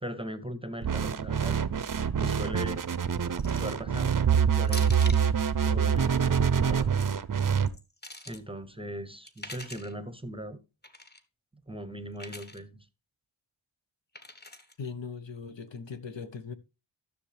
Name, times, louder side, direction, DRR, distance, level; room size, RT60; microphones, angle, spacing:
voice 1, 0.0-1.6 2.2-2.8 3.5-4.3 4.6-5.0 5.6-6.9 8.3-10.6 11.7-12.9, equal, 10° right, 0.8 m, -39 dB
sound 1, 0.8-7.7, right 7 dB, 40° right, 0.6 m, -26 dB
sound 2, 3.4-3.8 4.6-5.3 6.7-7.0 7.6-8.4 9.3-9.9 10.8-11.2 12.2-12.6 14.1-14.7, left 2 dB, 20° left, 1.1 m, -44 dB
voice 2, 14.8-16.5, left 5 dB, 60° left, 1.1 m, -39 dB
13.0 x 6.6 x 3.3 m
wide cardioid pair, 70°, 49 cm